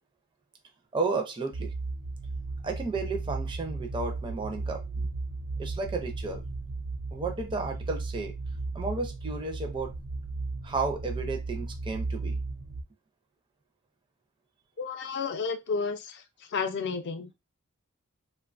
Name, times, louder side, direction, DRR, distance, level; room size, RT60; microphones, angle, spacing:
voice 1, 0.9-1.7 2.6-5.1 5.6-6.4 7.1-8.3 8.7-9.9 10.6-12.4, right 3 dB, 25° right, 0.4 m, -33 dB
sound 1, 1.5-12.8, right 3 dB, 80° right, 0.5 m, -35 dB
voice 2, 14.8-16.2 16.5-17.3, left 5 dB, 55° left, 0.4 m, -31 dB
2.8 x 2.2 x 2.4 m
head